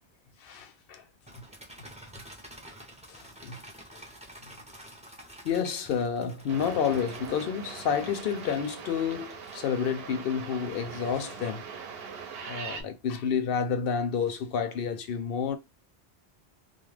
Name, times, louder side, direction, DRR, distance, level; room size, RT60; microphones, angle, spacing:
voice 1, 0.4-1.1 1.3-1.4 3.1-3.6 3.9-4.1 5.4-11.7 12.4-15.6, left 7 dB, 65° left, 0.7 m, -30 dB
sound 1, 1.3-10.0, right 1 dB, 10° right, 0.5 m, -50 dB
sound 2, 6.5-12.8, right 6 dB, 70° right, 0.8 m, -41 dB
2.3 x 2.1 x 3.2 m
omnidirectional pair, 1.1 m